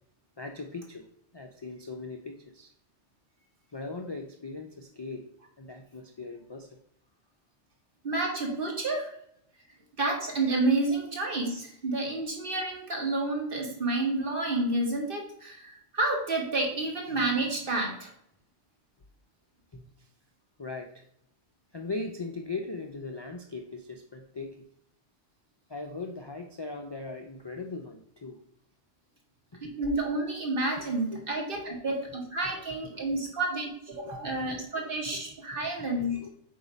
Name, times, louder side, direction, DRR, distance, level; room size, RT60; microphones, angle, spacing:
voice 1, 0.4-1.0 1.3-2.7 3.7-5.3 5.6-6.8 19.7-19.9 20.6-21.0 21.7-24.6 25.7-28.4 29.5-29.7 30.8-30.9 31.1-31.3 31.6-31.8 32.4-32.6 32.9-33.2 34.0-34.6 35.1-35.2 35.6-35.9 36.2-36.3, left 3 dB, 40° left, 3 dB, 0.3 m, -39 dB
voice 2, 8.0-9.1 10.0-18.1 29.8-36.2, right 2 dB, 50° right, 0 dB, 1.6 m, -30 dB
8.0 x 2.8 x 5.0 m, 0.72 s
omnidirectional pair, 1.2 m